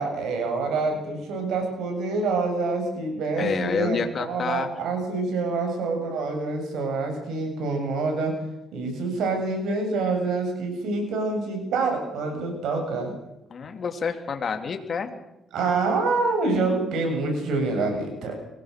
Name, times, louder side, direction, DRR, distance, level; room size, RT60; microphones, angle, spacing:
voice 1, 0.0-8.3 8.7-13.2 15.5-18.4, right 3 dB, 80° right, 3 dB, 7.4 m, -26 dB
voice 2, 3.4-4.7 13.5-15.1, left 6 dB, 50° left, 5 dB, 3.0 m, -28 dB
23.5 x 18.5 x 6.7 m, 0.87 s
cardioid pair, 90°, 0 cm